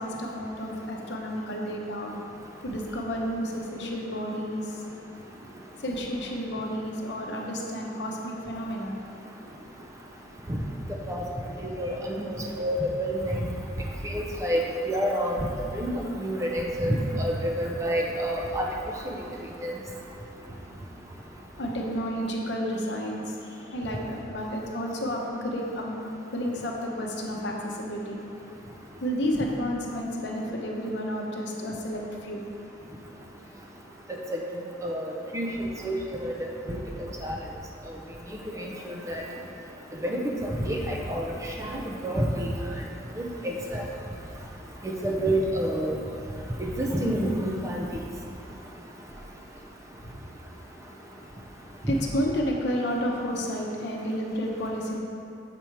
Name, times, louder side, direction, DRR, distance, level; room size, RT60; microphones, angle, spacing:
voice 1, 0.0-2.1 2.6-4.8 5.8-8.9 21.6-26.0 26.3-28.2 29.0-32.4 50.0-50.2 51.9-55.0, equal, 65° left, -1 dB, 0.8 m, -31 dB
voice 2, 11.8-13.4 14.0-14.6 14.9-15.5 15.7-18.7 19.1-19.2 19.6-19.7 34.3-34.4 34.8-35.1 35.3-35.5 35.8-36.8 37.2-37.3 38.6-39.2 40.0-40.2 40.6-41.3 41.6-42.5 43.2-43.8 44.8-46.0 46.6-47.8, equal, 15° right, -1 dB, 0.5 m, -28 dB
6.9 x 4.4 x 4.6 m, 2.6 s
head